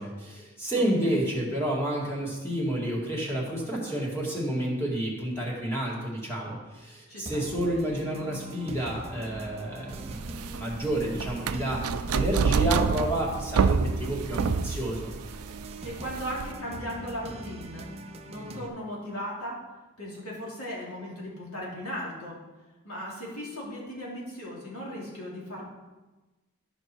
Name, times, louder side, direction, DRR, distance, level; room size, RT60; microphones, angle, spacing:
voice 1, 0.0-11.8 12.1-15.1, right 1 dB, 10° left, -4 dB, 2.4 m, -30 dB
voice 2, 0.7-1.2 7.1-7.4 15.8-17.9 18.3-19.5 20.0-22.4 22.8-25.7, equal, 75° left, -5 dB, 3.2 m, -37 dB
sound 1, 7.3-18.7, right 2 dB, 30° right, 0.7 m, -41 dB
sound 2, 9.9-16.5, right 5 dB, 80° right, 0.4 m, -28 dB
13.0 x 5.3 x 4.6 m, 1.2 s
head